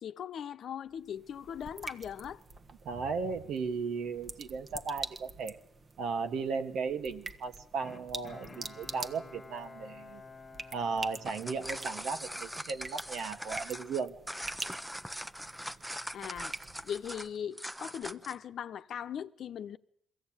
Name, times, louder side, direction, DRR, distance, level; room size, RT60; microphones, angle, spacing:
voice 1, 0.0-2.4 16.1-16.6 16.8-19.8, left 8 dB, 65° left, 0.9 m, -39 dB
sound 1, 0.9-17.3, right 3 dB, 35° right, 1.4 m, -46 dB
voice 2, 2.9-5.6 6.0-10.2 10.7-14.2, right 5 dB, 75° right, 1.9 m, -36 dB
Bowed string instrument, 7.8-12.3 12.8-12.9, left 3 dB, 25° left, 1.6 m, -51 dB
sound 2, 11.1-18.4, equal, 5° right, 0.8 m, -42 dB
22.0 x 16.0 x 8.9 m
cardioid pair, 90°, 0 cm